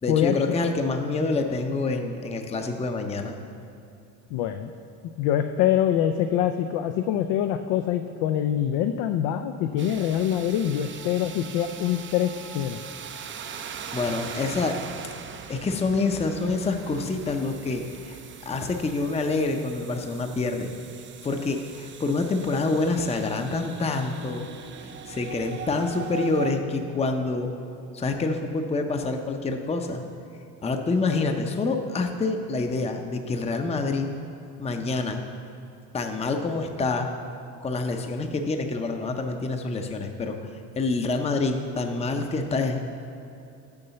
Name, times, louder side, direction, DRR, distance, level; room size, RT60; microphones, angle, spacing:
voice 1, 0.0-3.4 13.9-14.8 15.5-18.2 18.5-20.7 21.2-24.5 24.8-27.5 27.9-30.0 30.6-34.1 34.6-35.2 35.9-37.1 37.6-40.4 40.8-42.8, left 3 dB, 15° left, 5 dB, 0.6 m, -27 dB
voice 2, 4.3-4.7 5.2-12.8, left 10 dB, 75° left, 7 dB, 0.6 m, -24 dB
sound 1, 9.8-26.5, right 6 dB, 30° right, 0.5 m, -41 dB
7.1 x 5.4 x 6.8 m, 2.8 s
supercardioid pair, 90°, 41 cm